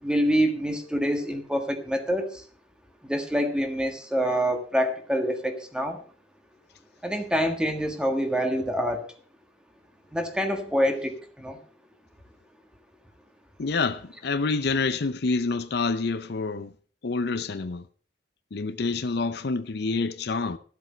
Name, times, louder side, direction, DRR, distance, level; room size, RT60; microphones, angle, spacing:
voice 1, 0.0-2.4 3.0-6.0 7.0-9.0 10.1-11.6, equal, 5° right, 1.5 m, -26 dB
voice 2, 13.6-16.7 17.0-17.8 18.5-20.6, left 4 dB, 65° left, 0.6 m, -27 dB
13.5 x 7.7 x 5.1 m
head